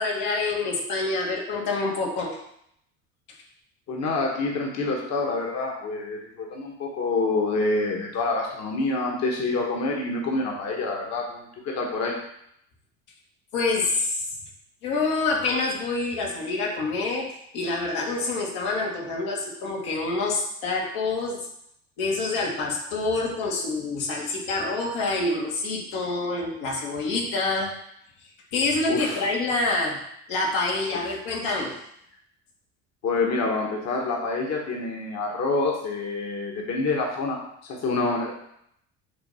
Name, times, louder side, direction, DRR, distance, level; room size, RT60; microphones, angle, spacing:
voice 1, 0.0-2.4 13.5-14.3 14.8-21.5 22.0-27.8 28.5-30.0 30.3-31.8, left 3 dB, 80° left, -2 dB, 1.7 m, -27 dB
voice 2, 3.9-12.2 28.9-29.3 33.0-37.4 37.7-38.3, left 3 dB, 50° left, -1 dB, 1.3 m, -27 dB
6.8 x 2.6 x 5.5 m, 0.73 s
supercardioid pair, 95°, 35 cm